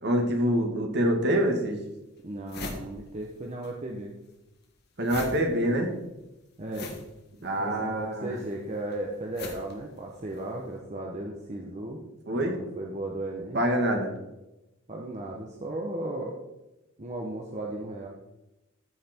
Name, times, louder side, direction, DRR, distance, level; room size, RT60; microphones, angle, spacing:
voice 1, 0.0-1.8 5.0-5.9 7.4-8.4 12.3-12.5 13.5-14.1, equal, 55° right, 3 dB, 2.1 m, -25 dB
sound 1, 1.2-1.3 1.9-2.0 2.2-3.7 4.0-10.6, left 2 dB, 55° left, 1.8 m, -42 dB
voice 2, 2.2-4.2 6.6-7.0 7.6-12.0 12.3-13.6 14.9-16.4 17.0-18.1, right 1 dB, 35° right, 0 dB, 1.0 m, -35 dB
14.0 x 5.9 x 4.4 m, 0.96 s
head